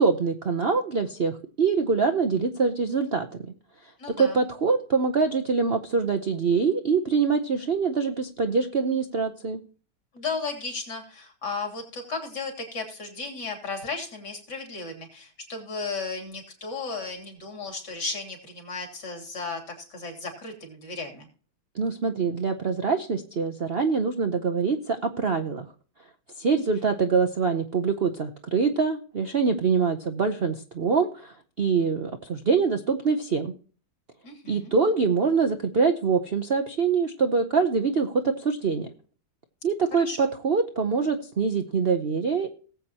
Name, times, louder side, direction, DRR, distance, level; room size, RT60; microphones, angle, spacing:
voice 1, 0.0-3.3 4.2-9.6 21.7-25.7 26.4-33.5 34.5-38.9 39.6-42.5, right 5 dB, 80° right, 5 dB, 0.5 m, -24 dB
voice 2, 4.0-4.4 10.1-21.3 26.7-26.8 34.2-34.7 40.0-40.3, left 4 dB, 50° left, 2 dB, 3.7 m, -35 dB
18.5 x 8.0 x 2.9 m, 0.40 s
omnidirectional pair, 2.3 m